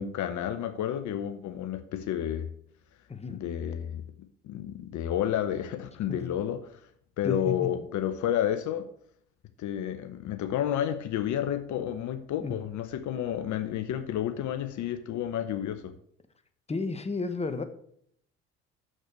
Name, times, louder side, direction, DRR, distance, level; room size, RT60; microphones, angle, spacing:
voice 1, 0.0-2.5 3.3-6.9 7.2-8.9 9.6-15.9, left 10 dB, 60° left, 9 dB, 0.8 m, -31 dB
voice 2, 7.2-7.7 12.4-12.6 16.7-17.6, left 4 dB, 20° left, 8 dB, 1.2 m, -32 dB
6.8 x 6.4 x 6.2 m, 0.65 s
hypercardioid pair, 60°, 33 cm